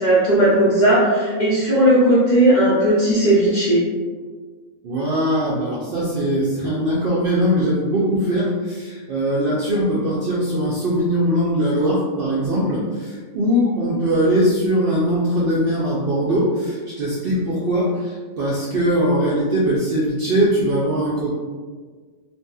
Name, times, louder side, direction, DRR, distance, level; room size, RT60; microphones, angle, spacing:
voice 1, 0.0-3.8, right 1 dB, 50° left, -9 dB, 0.5 m, -16 dB
voice 2, 4.8-21.3, equal, 65° right, -6 dB, 0.5 m, -21 dB
2.7 x 2.6 x 2.3 m, 1.5 s
omnidirectional pair, 1.4 m